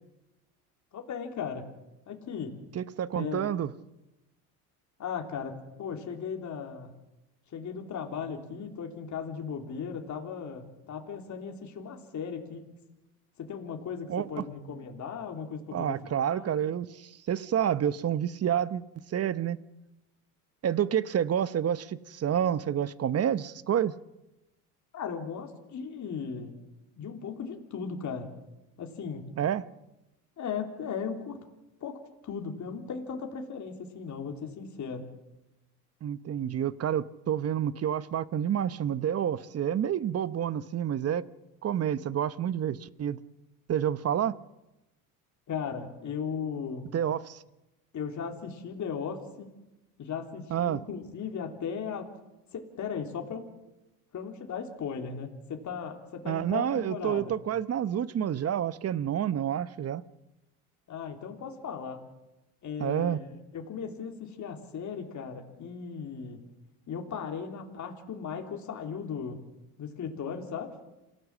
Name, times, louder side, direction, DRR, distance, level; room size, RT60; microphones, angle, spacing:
voice 1, 0.9-1.7 2.1-2.6 3.1-3.5 5.0-6.9 7.5-12.7 13.4-16.5 24.9-26.6 27.0-28.3 28.8-29.3 30.4-31.4 31.8-35.1 45.5-46.9 47.9-49.5 50.0-52.1 52.5-53.5 54.1-57.3 60.9-62.0 62.6-66.4 66.9-69.4 69.8-70.8, left 6 dB, 40° left, 3.4 m, -37 dB
voice 2, 2.7-3.7 14.1-14.4 15.7-18.8 19.1-19.6 20.6-23.9 29.4-29.6 36.0-41.2 41.6-43.2 43.7-44.4 46.9-47.4 50.5-50.8 56.3-60.0 62.8-63.2, right 9 dB, 35° right, 0.9 m, -29 dB
27.5 x 17.0 x 7.4 m
supercardioid pair, 95°, 44 cm